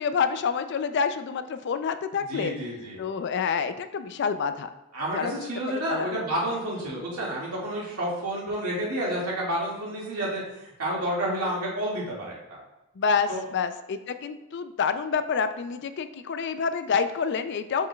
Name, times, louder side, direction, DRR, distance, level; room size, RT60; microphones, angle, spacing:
voice 1, 0.0-2.5 3.0-4.7 5.1-5.3 5.9-6.1 6.8-7.0 13.0-17.9, left 6 dB, 50° left, 10 dB, 0.4 m, -28 dB
voice 2, 2.3-3.0 4.9-12.6 13.3-13.4, right 1 dB, 90° right, -5 dB, 2.0 m, -30 dB
6.7 x 6.1 x 2.3 m, 0.94 s
head